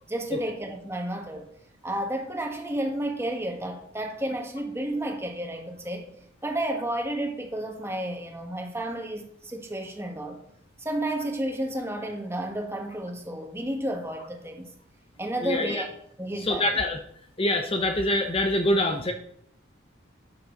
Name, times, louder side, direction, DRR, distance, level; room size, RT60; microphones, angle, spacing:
voice 1, 0.1-1.5 1.8-6.1 6.4-10.4 10.8-14.7 15.2-15.9 16.2-16.8, right 1 dB, 15° right, 1.7 m, -31 dB
voice 2, 15.4-15.8 16.4-17.0 17.4-19.1, left 1 dB, 30° left, 0.7 m, -25 dB
12.5 x 8.8 x 3.9 m
head